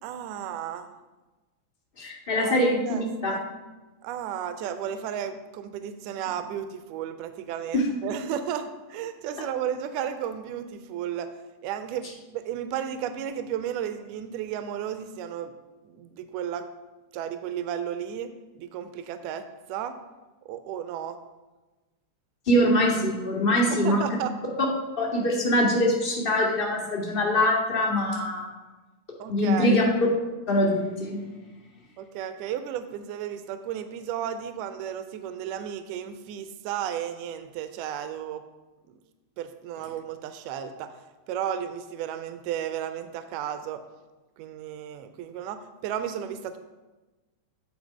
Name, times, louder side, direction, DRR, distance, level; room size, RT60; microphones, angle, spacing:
voice 1, 0.0-0.9 2.4-3.0 3.3-3.4 4.0-11.3 11.6-15.5 15.8-16.7 17.1-18.3 18.5-19.9 20.4-21.2 23.7-24.3 29.2-29.8 32.0-38.4 38.9-39.0 39.4-41.0 41.3-43.8 44.4-46.6, right 9 dB, 45° right, 10 dB, 0.5 m, -33 dB
voice 2, 2.0-3.3 7.7-7.8 22.5-24.0 25.0-28.5 29.3-29.8 30.5-31.2, left 1 dB, 45° left, -2 dB, 2.1 m, -23 dB
7.5 x 4.4 x 5.2 m, 1.2 s
figure-of-eight pair, 90°, 0 cm